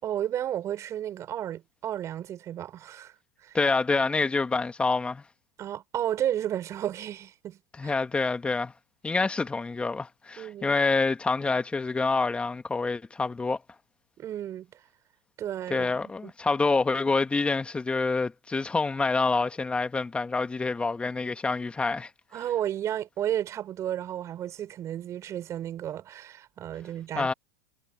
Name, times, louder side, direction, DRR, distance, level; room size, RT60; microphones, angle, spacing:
voice 1, 0.0-3.1 3.4-3.6 5.6-7.9 10.4-10.8 14.2-14.8 15.4-16.3 22.3-27.3, right 11 dB, 35° right, 5.7 m, -33 dB
voice 2, 3.5-5.2 7.8-8.7 9.0-13.6 15.7-22.1 27.2-27.3, left 3 dB, 15° left, 1.8 m, -27 dB
hypercardioid pair, 105°, 8 cm